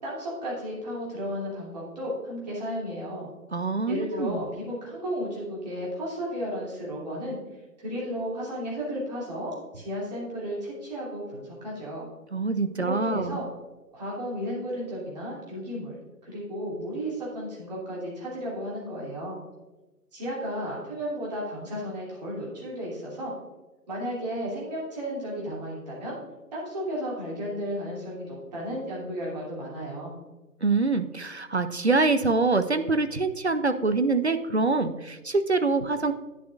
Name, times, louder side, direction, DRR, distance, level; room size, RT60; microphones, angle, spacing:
voice 1, 0.0-3.3 3.9-7.4 7.8-12.1 12.8-13.5 13.9-15.9 16.2-19.4 20.1-23.3 23.9-26.2 26.5-30.1, equal, 25° right, -5 dB, 2.6 m, -33 dB
voice 2, 3.5-4.4 12.3-13.4 30.6-36.1, right 3 dB, 45° right, 10 dB, 0.5 m, -25 dB
10.5 x 8.3 x 2.5 m, 1.1 s
figure-of-eight pair, 160°, 47 cm